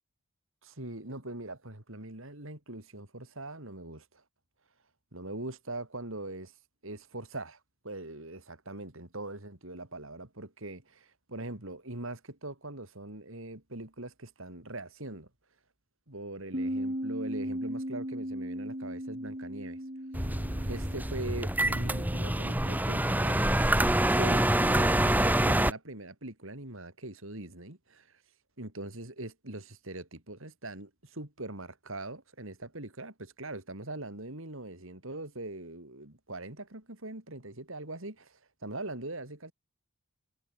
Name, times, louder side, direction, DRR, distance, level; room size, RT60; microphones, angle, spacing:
voice 1, 0.6-4.2 5.1-6.5 6.8-15.3 16.1-19.8 20.7-28.2 28.6-39.5, right 2 dB, 65° right, 3.7 m, -42 dB
Bass guitar, 16.5-22.8, equal, 35° right, 4.5 m, -37 dB
sound 1, 20.1-25.7, right 1 dB, 10° right, 1.5 m, -26 dB
head